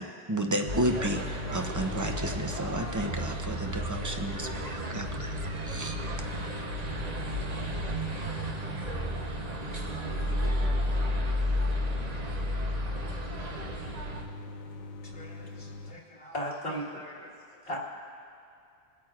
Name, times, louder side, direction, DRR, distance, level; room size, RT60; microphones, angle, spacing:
voice 1, 0.0-5.3 5.7-5.9, right 1 dB, 20° right, 3 dB, 0.5 m, -32 dB
sound 1, 0.6-15.9, left 3 dB, 90° left, 0.9 m, -42 dB
sound 2, 0.7-14.2, equal, 40° right, 0.9 m, -32 dB
voice 2, 7.7-9.2 9.9-11.7 16.4-17.4, left 1 dB, 5° left, -8 dB, 2.4 m, -50 dB
voice 3, 15.0-16.9 17.6-17.8, equal, 60° left, -3 dB, 2.0 m, -37 dB
23.5 x 8.8 x 2.4 m, 2.6 s
omnidirectional pair, 1.1 m